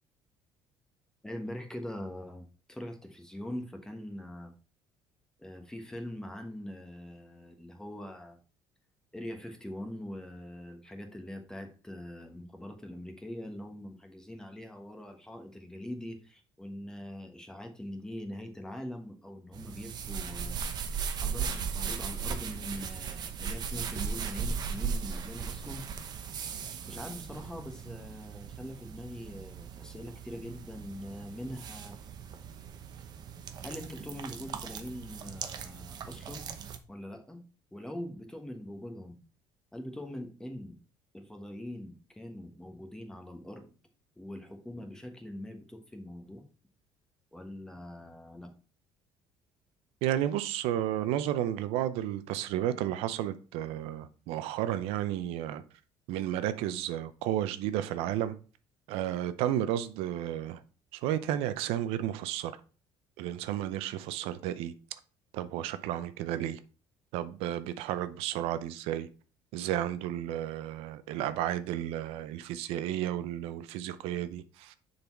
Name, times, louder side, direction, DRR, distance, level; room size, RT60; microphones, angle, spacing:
voice 1, 1.2-4.5 5.4-8.4 9.1-20.5 20.9-25.8 26.8-32.0 33.6-36.5 36.9-37.4 37.7-39.2 39.7-40.8 41.1-43.8 44.2-46.4 47.3-48.5, left 1 dB, 5° left, 1.3 m, -43 dB
sound 1, 19.5-36.8, right 6 dB, 45° right, 0.8 m, -38 dB
voice 2, 50.0-55.6 56.1-58.4 58.9-60.6 60.9-62.5 63.2-64.7 65.3-66.6 67.1-69.1 69.5-74.8, right 12 dB, 85° right, 0.5 m, -32 dB
6.8 x 4.0 x 4.5 m
cardioid pair, 125°, 10 cm